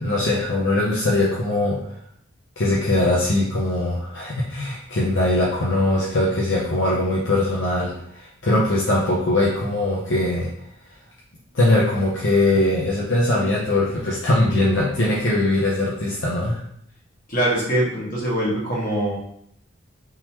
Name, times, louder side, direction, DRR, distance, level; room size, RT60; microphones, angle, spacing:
voice 1, 0.0-1.8 2.6-10.5 11.5-16.6, left 2 dB, 65° left, -5 dB, 0.7 m, -21 dB
voice 2, 17.3-19.2, right 1 dB, 45° left, -6 dB, 1.4 m, -23 dB
3.7 x 2.9 x 2.9 m, 0.70 s
head